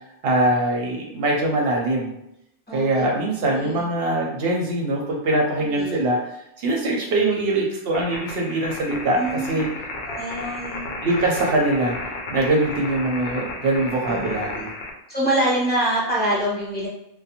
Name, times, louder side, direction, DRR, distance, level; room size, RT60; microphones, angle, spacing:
voice 1, 0.2-2.1 2.7-6.2 6.6-9.2 9.5-9.7 11.0-12.0 12.3-14.7, right 2 dB, 65° right, 0 dB, 0.8 m, -22 dB
voice 2, 2.7-3.1 3.4-3.8 5.6-6.0 9.2-9.5 10.0-10.9 14.1-14.4 15.1-16.9, right 1 dB, 10° left, -7 dB, 0.9 m, -25 dB
sound 1, 7.9-14.9, left 2 dB, 65° left, 0.7 m, -33 dB
2.4 x 2.2 x 2.8 m, 0.81 s
omnidirectional pair, 1.2 m